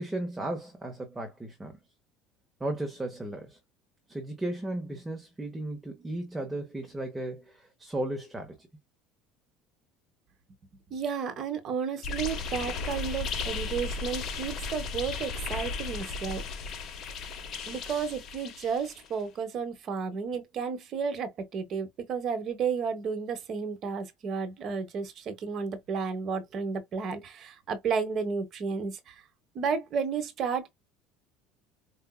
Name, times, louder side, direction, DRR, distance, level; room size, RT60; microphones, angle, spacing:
voice 1, 0.0-1.8 2.6-3.6 4.1-8.7, right 1 dB, 10° right, 1.1 m, -35 dB
voice 2, 10.9-16.4 17.7-29.2 29.5-30.7, right 6 dB, 45° right, 1.1 m, -32 dB
sound 1, 12.0-19.1, left 4 dB, 40° left, 1.1 m, -35 dB
4.8 x 2.7 x 2.2 m
cardioid pair, 125°, 0 cm